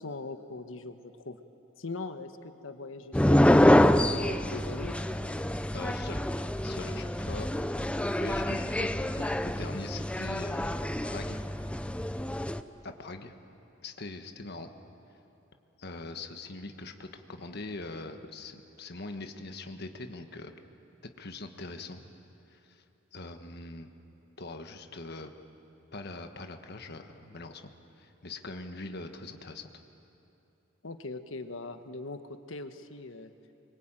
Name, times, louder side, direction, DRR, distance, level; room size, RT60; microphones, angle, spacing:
voice 1, 0.0-1.4 1.8-5.0 7.3-7.5 30.8-33.3, left 3 dB, 75° left, 8 dB, 1.2 m, -41 dB
sound 1, 3.1-12.6, left 1 dB, 5° left, 0.6 m, -26 dB
voice 2, 5.7-6.2 6.6-7.5 7.9-11.4 12.8-13.3 13.8-14.7 15.8-20.5 21.2-22.0 22.5-22.8 23.1-23.9 24.4-25.3 25.9-27.7 28.0-29.8, left 2 dB, 55° left, 6 dB, 1.4 m, -42 dB
24.5 x 23.0 x 9.1 m, 2.9 s
head